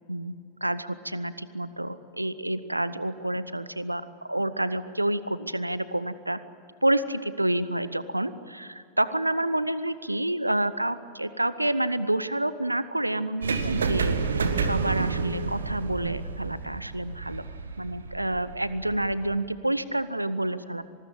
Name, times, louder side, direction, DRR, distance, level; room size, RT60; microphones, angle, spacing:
voice 1, 0.6-6.4 6.8-17.4 17.8-20.8, right 1 dB, 85° right, 15 dB, 0.8 m, -28 dB
sound 1, 13.4-19.4, right 5 dB, 70° right, 1.6 m, -30 dB
26.0 x 20.0 x 8.7 m, 2.5 s
figure-of-eight pair, 90°, 0 cm